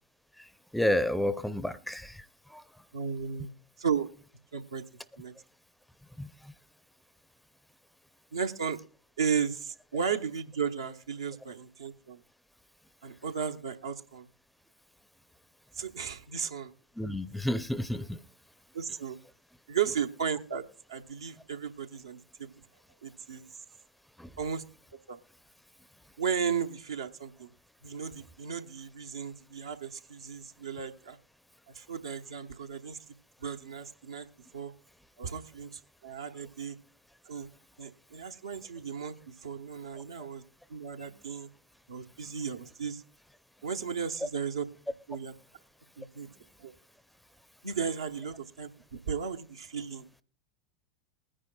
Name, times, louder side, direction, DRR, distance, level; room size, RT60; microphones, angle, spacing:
voice 1, 0.7-2.1 6.2-6.3 17.0-18.2, left 1 dB, 5° left, 0.6 m, -30 dB
voice 2, 2.9-3.5 3.8-4.1 4.5-4.8 5.2-5.3 8.3-8.8 9.2-12.2 13.0-14.3 15.7-16.7 18.7-19.2 19.7-20.6 20.9-22.7 23.0-23.5 24.4-24.6 25.1-25.2 26.2-27.5 27.8-31.2 31.7-33.0 33.4-34.3 34.5-34.7 35.2-36.8 37.3-37.5 37.8-39.2 39.4-40.4 40.7-41.5 41.9-43.0 43.6-44.6 45.1-45.3 46.0-46.3 46.6-46.7 47.6-50.1, right 7 dB, 75° right, 0.9 m, -35 dB
20.5 x 10.0 x 2.3 m
figure-of-eight pair, 85°, 2 cm